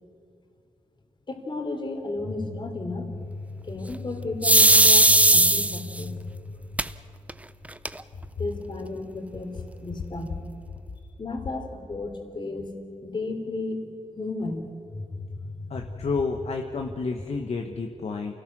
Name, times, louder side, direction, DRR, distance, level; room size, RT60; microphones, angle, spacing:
voice 1, 1.3-6.5 8.4-9.5 9.8-10.4 11.2-12.7 13.0-15.8, left 2 dB, 40° left, 4 dB, 3.1 m, -33 dB
sound 1, 4.4-6.0 6.8-6.9 7.3-7.4 7.7-8.3, right 2 dB, 10° right, 0.5 m, -17 dB
voice 2, 15.7-18.3, left 4 dB, 55° left, 3 dB, 1.2 m, -30 dB
29.0 x 18.0 x 6.1 m, 2.3 s
wide cardioid pair, 150°, 13 cm